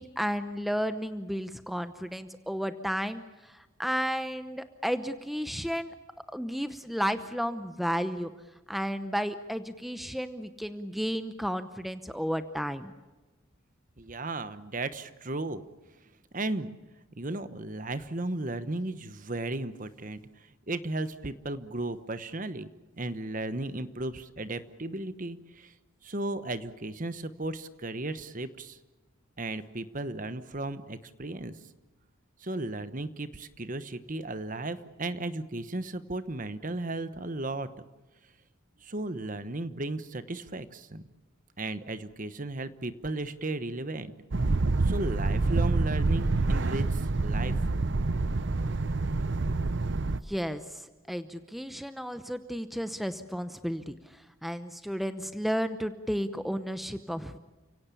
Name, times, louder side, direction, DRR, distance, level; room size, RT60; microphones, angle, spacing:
voice 1, 0.0-5.9 6.3-8.3 8.7-12.9 50.1-57.4, equal, ahead, 10 dB, 0.8 m, -33 dB
voice 2, 14.0-15.6 16.3-16.7 17.2-22.7 22.9-25.7 26.0-28.8 29.4-31.6 32.4-37.7 38.8-41.0 41.6-44.1 44.8-47.5 48.5-48.7, right 2 dB, 40° right, 12 dB, 1.1 m, -35 dB
sound 1, 44.3-50.2, right 3 dB, 55° right, 0.7 m, -27 dB
30.0 x 17.5 x 8.4 m, 1.2 s
head